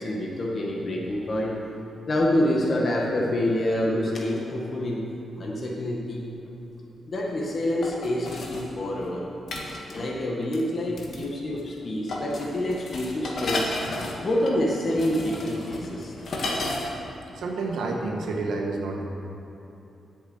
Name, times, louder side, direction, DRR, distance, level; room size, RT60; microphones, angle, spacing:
voice 1, 0.0-1.6 2.1-5.0 5.4-6.3 7.1-9.3 9.9-13.6 14.2-16.1, left 1 dB, 50° left, -2 dB, 1.7 m, -27 dB
sound 1, 6.5-6.6 7.8-8.7 9.5-10.0 10.5-10.6 11.0-11.3 11.5-11.8 12.1-16.9 17.2-17.3, left 2 dB, 70° left, 1.8 m, -33 dB
voice 2, 17.3-19.0, right 3 dB, 80° right, 0 dB, 1.5 m, -29 dB
8.4 x 7.2 x 8.1 m, 3.0 s
cardioid pair, 60°, 0 cm